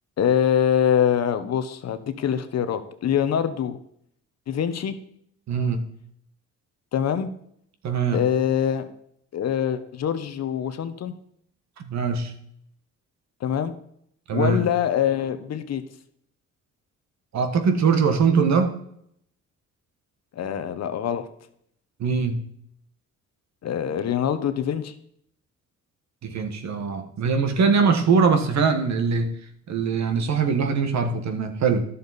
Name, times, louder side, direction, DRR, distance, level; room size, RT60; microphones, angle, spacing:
voice 1, 0.2-3.8 4.5-4.9 6.9-7.3 8.1-8.9 9.3-11.1 13.4-13.7 14.3-15.8 20.3-21.2 23.6-24.9, left 9 dB, 60° left, 10 dB, 1.0 m, -24 dB
voice 2, 5.5-5.9 7.8-8.2 11.8-12.3 14.3-14.6 17.3-18.7 22.0-22.4 26.2-29.4 29.7-31.8, right 5 dB, 65° right, 7 dB, 1.4 m, -22 dB
11.0 x 6.9 x 4.1 m, 0.70 s
cardioid pair, 90°, 30 cm